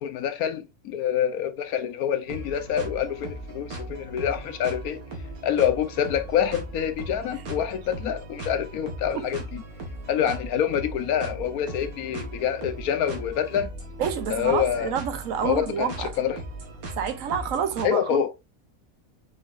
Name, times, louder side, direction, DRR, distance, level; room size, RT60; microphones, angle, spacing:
voice 1, 0.0-5.0 5.4-9.6 10.1-13.7 14.3-14.9 15.4-16.3 17.8-18.3, left 9 dB, 80° left, 1.2 m, -26 dB
sound 1, 2.3-17.9, right 1 dB, 90° right, 1.9 m, -38 dB
voice 2, 14.0-16.1 17.0-18.4, right 8 dB, 70° right, 1.1 m, -28 dB
5.2 x 4.0 x 2.5 m
omnidirectional pair, 1.5 m